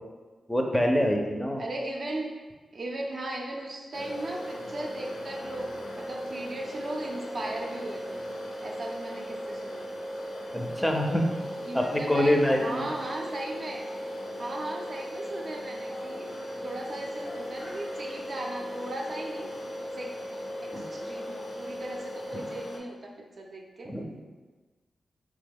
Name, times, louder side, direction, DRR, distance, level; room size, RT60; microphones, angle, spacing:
voice 1, 0.5-1.6 10.5-11.3 11.7-12.9 20.7-20.8 23.8-24.1, left 1 dB, 10° left, 1 dB, 0.4 m, -25 dB
voice 2, 1.6-2.3 2.7-8.2 8.6-9.9 11.7-13.9 14.4-16.4 16.6-19.5 19.8-20.1 20.6-23.9, right 1 dB, 60° right, 0 dB, 0.5 m, -37 dB
sound 1, 3.9-22.8, equal, 75° left, 0.5 m, -37 dB
2.9 x 2.1 x 3.4 m, 1.3 s
cardioid pair, 50°, 0 cm